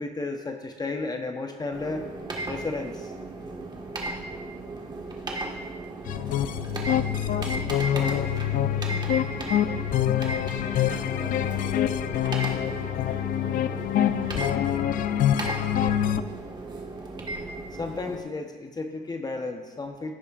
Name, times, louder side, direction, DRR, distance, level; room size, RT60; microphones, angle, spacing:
voice 1, 0.0-2.1 2.4-3.1 7.9-8.3 17.7-20.1, left 3 dB, 25° left, 4 dB, 0.9 m, -33 dB
sound 1, 1.7-18.2, right 2 dB, 25° right, 1.5 m, -36 dB
sound 2, 6.1-16.2, left 11 dB, 55° left, 0.4 m, -26 dB
voice 2, 8.7-9.2 10.6-16.4, right 4 dB, 55° right, 2 dB, 1.9 m, -47 dB
16.0 x 6.8 x 2.4 m, 1.3 s
cardioid pair, 110°, 17 cm